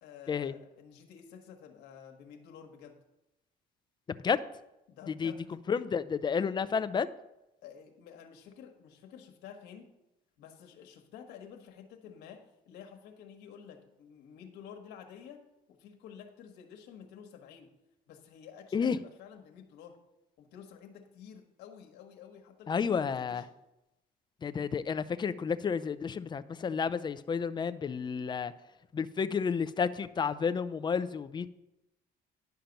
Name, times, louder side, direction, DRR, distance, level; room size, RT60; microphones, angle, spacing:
voice 1, 0.0-3.0 4.9-5.4 7.6-9.9 10.4-17.7 18.1-20.0 20.4-23.5, left 8 dB, 85° left, 4 dB, 1.3 m, -51 dB
voice 2, 4.1-4.5 5.1-5.3 5.7-7.1 18.7-19.0 22.7-23.4 24.4-28.5 28.9-31.5, left 6 dB, 25° left, 14 dB, 0.5 m, -31 dB
10.5 x 5.7 x 5.2 m, 0.91 s
cardioid pair, 110°, 17 cm